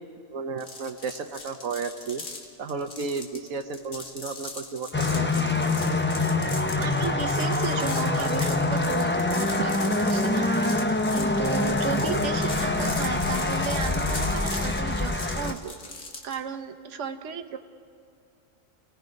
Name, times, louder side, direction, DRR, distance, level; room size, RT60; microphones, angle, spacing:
voice 1, 0.3-2.2 2.6-5.3, right 5 dB, 80° right, 6 dB, 1.3 m, -33 dB
sound 1, 0.6-16.4, left 3 dB, 75° left, 2.2 m, -39 dB
sound 2, 4.9-15.5, left 2 dB, 15° left, 0.4 m, -25 dB
voice 2, 6.8-10.5 11.1-15.9 16.2-17.6, right 6 dB, 65° right, 7 dB, 1.3 m, -34 dB
29.5 x 17.5 x 5.3 m, 2.3 s
omnidirectional pair, 1.4 m